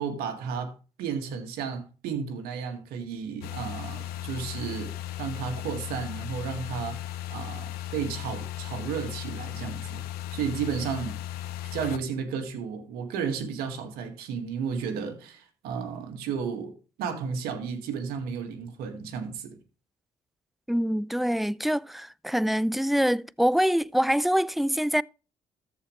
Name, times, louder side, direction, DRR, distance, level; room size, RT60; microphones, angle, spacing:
voice 1, 0.0-7.0 7.3-10.0 10.3-11.2 11.7-19.6, right 6 dB, 80° right, 2.0 m, -33 dB
sound 1, 3.4-12.0, left 13 dB, 80° left, 0.9 m, -36 dB
voice 2, 20.7-25.0, equal, ahead, 0.4 m, -25 dB
14.0 x 5.0 x 3.2 m
hypercardioid pair, 55°, 16 cm